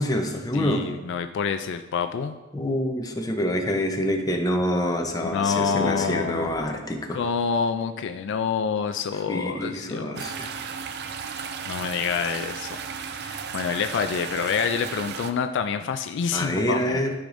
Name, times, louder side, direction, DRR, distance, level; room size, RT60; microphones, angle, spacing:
voice 1, 0.0-0.9 2.5-7.2 9.3-10.5 16.3-17.1, left 1 dB, 20° left, 3 dB, 0.7 m, -26 dB
voice 2, 0.5-2.4 5.2-6.6 7.1-10.2 11.7-12.8 13.1-17.0, left 6 dB, 60° left, 8 dB, 0.3 m, -27 dB
sound 1, 10.2-15.3, right 6 dB, 55° right, 0.5 m, -34 dB
12.5 x 5.0 x 2.6 m, 1.1 s
head